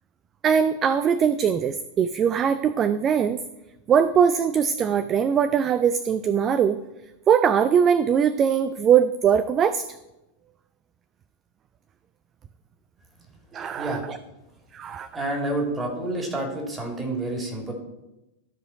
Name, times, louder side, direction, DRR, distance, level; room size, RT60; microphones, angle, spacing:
voice 1, 0.4-3.4 3.9-6.8 7.3-9.9 13.5-14.2 14.7-15.1, right 7 dB, 25° right, 13 dB, 0.3 m, -21 dB
voice 2, 15.1-17.7, right 2 dB, 10° right, 0 dB, 2.4 m, -28 dB
13.5 x 4.9 x 4.0 m, 0.96 s
figure-of-eight pair, 90°, 0 cm